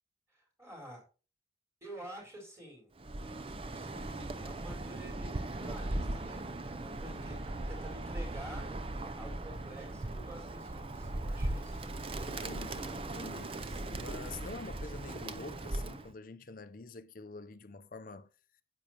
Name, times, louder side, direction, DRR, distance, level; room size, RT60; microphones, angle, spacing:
voice 1, 0.3-1.0 1.8-2.9 3.7-11.9 13.6-13.8, right 1 dB, 15° right, 4.6 m, -50 dB
Bird, 3.0-16.1, right 2 dB, 30° right, 0.6 m, -39 dB
voice 2, 12.2-18.3, left 3 dB, 50° left, 0.6 m, -47 dB
10.0 x 7.7 x 2.9 m
head